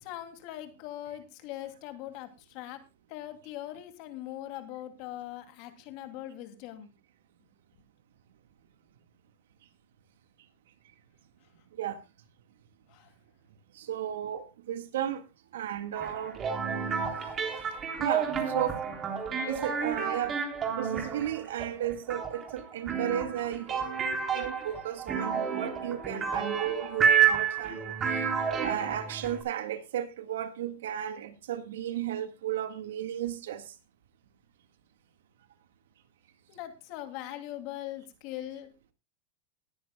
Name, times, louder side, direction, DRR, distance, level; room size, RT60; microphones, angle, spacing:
voice 1, 0.0-2.8 3.1-6.9 12.9-13.1 18.3-18.6 36.5-38.9, left 13 dB, 50° left, 2.7 m, -41 dB
voice 2, 13.7-15.2 15.5-16.4 18.0-18.8 19.5-20.4 20.8-24.0 24.3-28.3 28.6-33.7, right 10 dB, 85° right, 1.8 m, -34 dB
sound 1, 16.0-29.4, right 7 dB, 25° right, 3.6 m, -30 dB
20.0 x 10.0 x 2.3 m
supercardioid pair, 135°, 0 cm